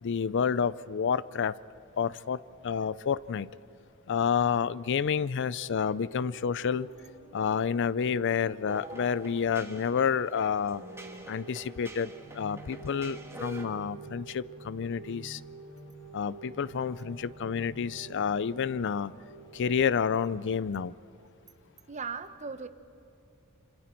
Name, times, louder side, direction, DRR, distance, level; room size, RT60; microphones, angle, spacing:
voice 1, 0.0-1.5 2.0-2.4 2.6-3.5 4.1-6.9 7.3-10.8 11.3-15.4 16.1-19.1 19.5-20.9, left 6 dB, 55° left, 18 dB, 0.4 m, -29 dB
sound 1, 5.4-19.8, right 4 dB, 75° left, 5.6 m, -49 dB
sound 2, 8.7-13.7, right 1 dB, 10° right, 1.7 m, -46 dB
voice 2, 21.9-22.7, right 5 dB, 35° right, 11 dB, 0.9 m, -38 dB
27.0 x 26.5 x 4.5 m, 2.7 s
head